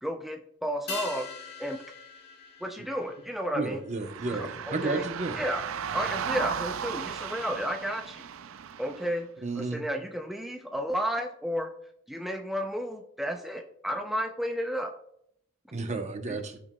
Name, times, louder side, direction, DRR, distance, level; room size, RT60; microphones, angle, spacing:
voice 1, 0.0-1.3 1.6-1.8 2.6-3.8 4.3-5.1 5.4-5.6 5.9-8.2 8.8-9.3 9.6-11.7 12.1-15.0 16.3-16.4, equal, ahead, 3 dB, 0.4 m, -32 dB
sound 1, 0.9-5.6 5.8-5.9, left 4 dB, 50° left, 2.1 m, -43 dB
voice 2, 3.6-5.3 9.4-9.8 15.7-16.6, right 3 dB, 35° right, 6 dB, 0.8 m, -32 dB
sound 2, 4.0-9.2, right 7 dB, 75° right, 0.4 m, -35 dB
14.5 x 5.9 x 2.3 m, 0.74 s
head